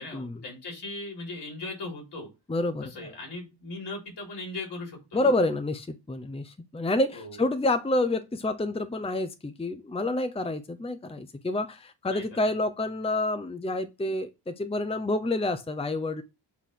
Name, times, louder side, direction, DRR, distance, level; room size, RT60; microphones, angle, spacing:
voice 1, 0.0-2.3 2.8-5.3 7.1-7.4 12.1-12.5, left 2 dB, 75° left, 4.1 m, -39 dB
voice 2, 2.5-3.1 5.1-16.2, left 2 dB, 15° left, 0.8 m, -28 dB
8.3 x 3.3 x 5.8 m
cardioid pair, 65°, 41 cm